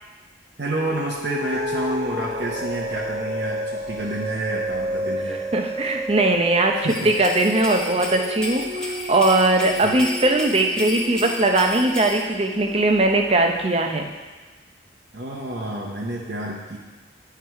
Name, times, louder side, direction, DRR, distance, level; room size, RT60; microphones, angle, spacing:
voice 1, 0.6-5.4 6.7-7.1 9.8-9.9 15.1-16.8, right 1 dB, 60° right, -3 dB, 0.9 m, -29 dB
sound 1, 0.7-13.5, equal, 80° right, 1.4 m, -32 dB
voice 2, 5.5-6.8 7.0-14.1, right 2 dB, 30° right, 4 dB, 0.7 m, -20 dB
sound 2, 6.9-12.2, left 2 dB, 5° left, 0.9 m, -33 dB
9.5 x 4.7 x 4.7 m, 1.3 s
head